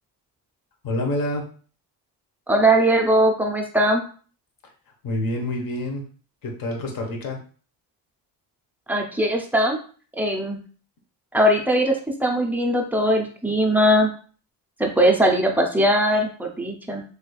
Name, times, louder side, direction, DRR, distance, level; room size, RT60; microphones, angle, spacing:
voice 1, 0.8-1.4 5.0-6.0 6.4-7.4, left 1 dB, 55° left, 2 dB, 1.0 m, -27 dB
voice 2, 2.5-4.0 8.9-9.8 10.2-10.6 11.3-14.1 14.8-17.0, right 1 dB, 5° right, 2 dB, 0.4 m, -20 dB
3.4 x 3.1 x 2.3 m, 0.41 s
cardioid pair, 125°, 42 cm